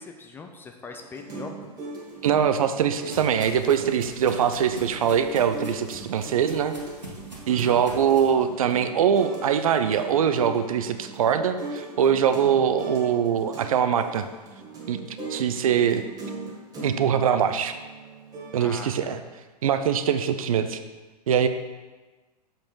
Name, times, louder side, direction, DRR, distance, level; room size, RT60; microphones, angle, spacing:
voice 1, 0.0-1.7 7.5-7.8 18.6-19.2, left 4 dB, 10° left, 4 dB, 0.4 m, -41 dB
sound 1, 0.9-18.6, right 3 dB, 20° right, 1.5 m, -39 dB
voice 2, 2.2-6.7 7.5-14.3 14.9-16.0 16.8-17.8 18.5-19.2 19.6-20.8 21.3-21.5, right 8 dB, 55° right, 10 dB, 0.6 m, -23 dB
sound 2, 2.2-8.3, right 1 dB, 85° right, 1.8 m, -43 dB
7.3 x 5.2 x 4.7 m, 1.3 s
figure-of-eight pair, 105°, 21 cm